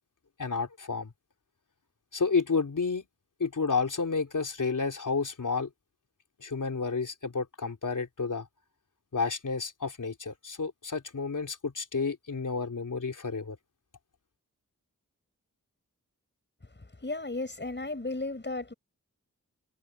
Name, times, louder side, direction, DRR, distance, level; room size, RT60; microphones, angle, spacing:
voice 1, 0.4-1.1 2.1-3.1 3.4-5.7 6.4-8.5 9.1-13.6, left 4 dB, 70° left, 3.5 m, -30 dB
voice 2, 17.0-18.7, left 2 dB, 35° left, 6.7 m, -34 dB
wide cardioid pair, 85°, 32 cm